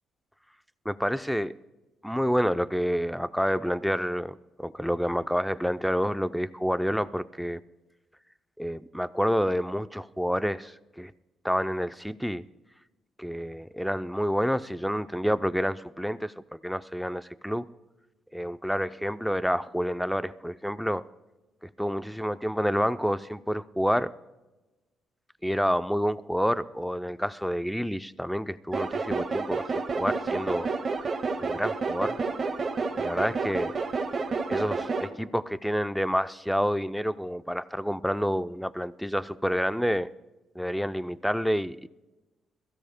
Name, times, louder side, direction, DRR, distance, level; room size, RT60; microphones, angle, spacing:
voice 1, 0.9-1.5 2.0-7.6 8.6-11.1 11.4-12.4 13.2-17.7 18.3-21.0 21.6-24.1 25.4-30.7 31.4-32.2 33.0-33.7 34.5-40.1 40.6-41.9, equal, ahead, 13 dB, 0.5 m, -28 dB
sound 1, 28.7-35.1, right 4 dB, 40° right, 1.6 m, -30 dB
22.5 x 15.5 x 2.2 m, 1.1 s
cardioid pair, 90°, 0 cm